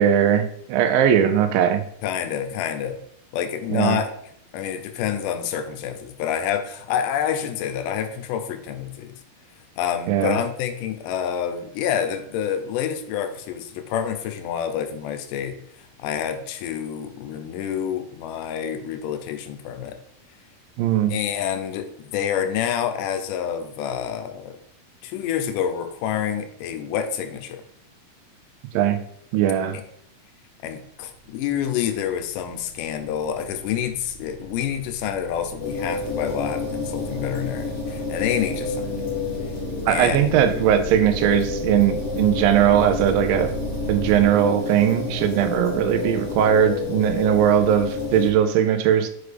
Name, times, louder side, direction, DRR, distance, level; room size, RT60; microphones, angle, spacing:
voice 1, 0.0-1.8 3.7-4.0 10.1-10.4 20.8-21.1 28.7-29.0 29.3-29.8 39.9-43.5 43.9-49.1, right 9 dB, 90° right, 8 dB, 2.4 m, -19 dB
voice 2, 2.0-3.0 3.3-4.1 4.5-9.2 9.8-15.6 16.0-20.0 21.1-24.6 25.0-27.6 29.7-29.9 30.6-39.1 39.9-40.6, left 9 dB, 80° left, 8 dB, 2.1 m, -28 dB
sound 1, 30.9-44.2, right 2 dB, 55° right, 0.4 m, -37 dB
sound 2, 35.6-48.3, left 4 dB, 25° left, 1.3 m, -30 dB
6.4 x 4.8 x 3.3 m, 0.69 s
omnidirectional pair, 4.0 m